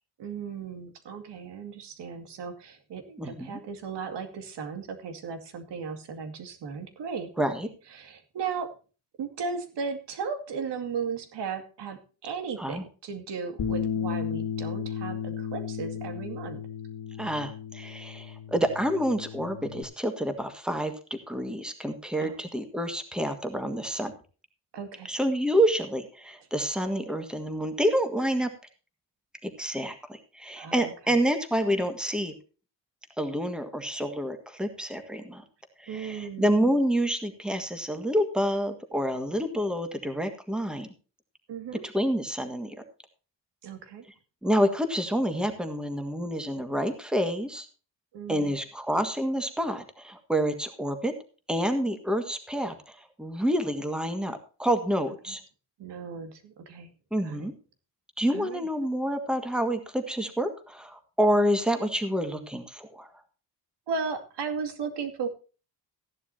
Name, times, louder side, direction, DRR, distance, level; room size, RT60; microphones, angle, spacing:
voice 1, 0.2-7.5 7.9-8.7 9.2-16.6 22.2-22.4 24.7-25.1 30.6-30.9 35.9-36.5 41.5-41.8 43.6-44.0 48.1-48.5 55.3-55.4 55.8-56.9 57.2-57.5 58.3-58.7 63.9-65.3, right 5 dB, 70° right, 7 dB, 2.3 m, -36 dB
voice 2, 3.2-3.6 7.4-7.7 12.6-12.8 17.2-24.1 25.1-28.5 29.4-32.3 33.2-35.4 35.8-40.9 41.9-42.7 44.4-47.7 48.3-51.1 51.5-55.4 57.1-57.5 58.2-63.1, equal, ahead, 7 dB, 1.7 m, -28 dB
Bass guitar, 13.6-19.8, left 7 dB, 65° left, 1.8 m, -34 dB
15.0 x 11.0 x 2.8 m, 0.35 s
cardioid pair, 150°, 43 cm